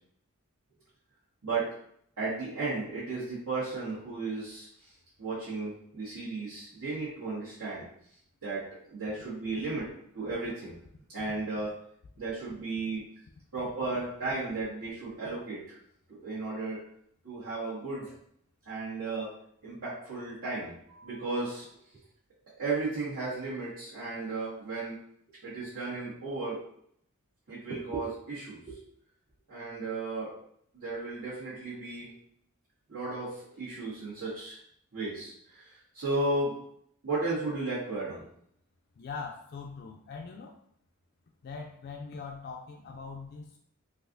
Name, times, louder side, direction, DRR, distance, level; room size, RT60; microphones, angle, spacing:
voice 1, 1.4-1.7 2.2-4.7 5.2-7.9 8.4-10.8 11.1-11.7 12.2-13.1 13.5-15.7 16.2-16.8 17.2-18.1 18.6-19.3 19.6-21.7 22.6-25.0 25.4-26.6 27.5-28.8 29.5-30.3 30.7-32.1 32.9-34.6 34.9-36.6 37.0-38.2, right 3 dB, 80° right, -13 dB, 1.4 m, -34 dB
voice 2, 39.0-40.6 41.4-43.6, left 4 dB, 45° left, 1 dB, 0.3 m, -41 dB
4.1 x 2.4 x 2.6 m, 0.68 s
head